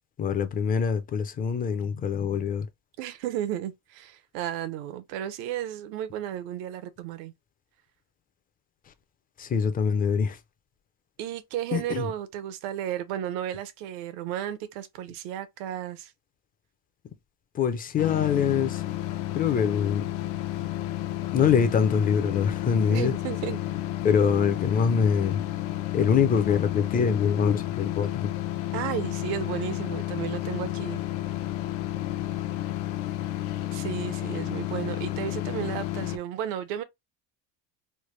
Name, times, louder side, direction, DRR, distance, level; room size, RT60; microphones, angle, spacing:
voice 1, 0.2-2.7 9.4-10.4 11.7-12.1 17.5-18.8 19.3-20.0 21.3-23.1 24.0-25.4 25.9-28.3, left 7 dB, 25° left, 0.4 m, -24 dB
voice 2, 3.0-7.3 11.2-16.1 22.9-23.6 28.7-31.0 33.7-36.8, right 11 dB, 85° right, 0.7 m, -33 dB
sound 1, 18.0-36.2, left 14 dB, 75° left, 0.6 m, -31 dB
3.2 x 2.1 x 3.1 m
cardioid pair, 140°, 41 cm